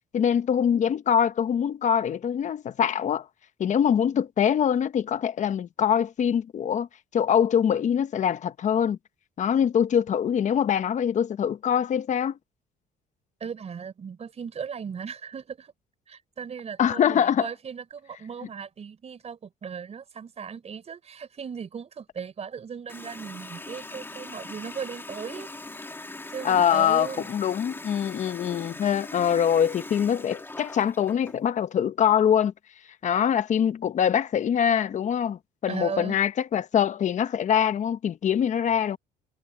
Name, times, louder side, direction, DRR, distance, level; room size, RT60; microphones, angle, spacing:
voice 1, 0.1-3.3 3.6-6.9 7.1-9.0 9.4-12.4 16.8-17.5 26.4-32.5 33.0-39.0, left 8 dB, 45° left, 1.1 m, -24 dB
voice 2, 13.4-15.7 16.1-25.5 26.3-27.3 35.7-36.2, right 6 dB, 40° right, 4.6 m, -37 dB
Water tap faucet, 22.9-31.4, left 2 dB, 15° left, 2.8 m, -41 dB
cardioid pair, 110°, 17 cm